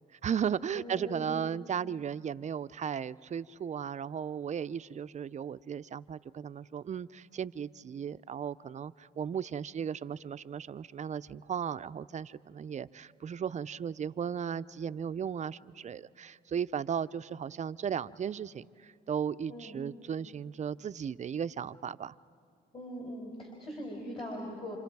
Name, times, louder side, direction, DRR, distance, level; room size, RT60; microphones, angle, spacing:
voice 1, 0.2-22.1, right 8 dB, 35° right, 15 dB, 0.4 m, -36 dB
voice 2, 0.7-1.4 19.5-19.8 22.7-24.8, equal, 30° left, 0 dB, 4.0 m, -41 dB
27.5 x 27.5 x 4.7 m, 2.4 s
cardioid pair, 90°, 20 cm